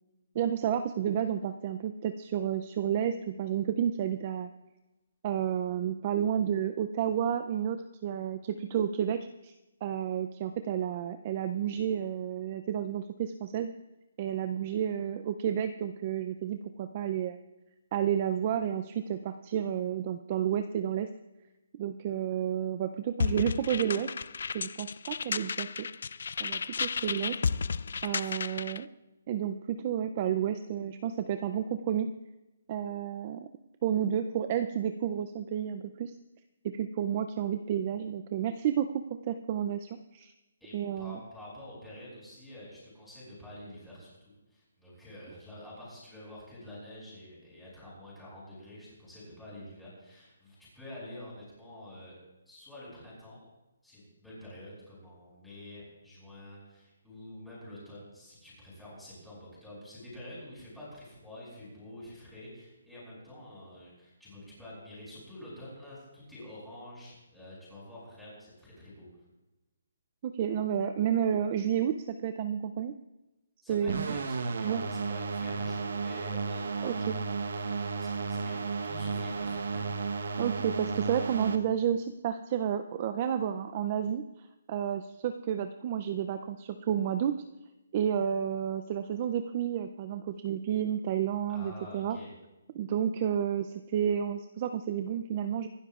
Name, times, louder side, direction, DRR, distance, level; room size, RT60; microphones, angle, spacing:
voice 1, 0.3-4.5 5.2-9.5 9.8-13.7 14.2-17.4 17.9-21.1 21.8-24.1 24.5-25.9 26.4-27.4 28.0-28.9 29.3-32.1 32.7-33.5 33.8-36.1 36.6-40.3 40.7-41.2 70.2-72.9 73.7-74.2 74.6-74.8 76.8-77.2 80.4-84.2 84.7-87.4 87.9-92.2 92.7-95.7, right 9 dB, 25° right, 9 dB, 0.4 m, -31 dB
sound 1, 23.2-28.8, left 5 dB, 55° left, 0.3 m, -33 dB
voice 2, 28.2-28.6 40.6-52.1 52.5-53.4 53.8-69.1 73.6-77.2 77.6-79.8 91.5-92.3, left 1 dB, ahead, -9 dB, 5.9 m, -48 dB
sound 2, 73.9-81.6, right 4 dB, 60° right, 1.0 m, -33 dB
25.5 x 12.0 x 2.4 m, 1.0 s
hypercardioid pair, 175°, 0 cm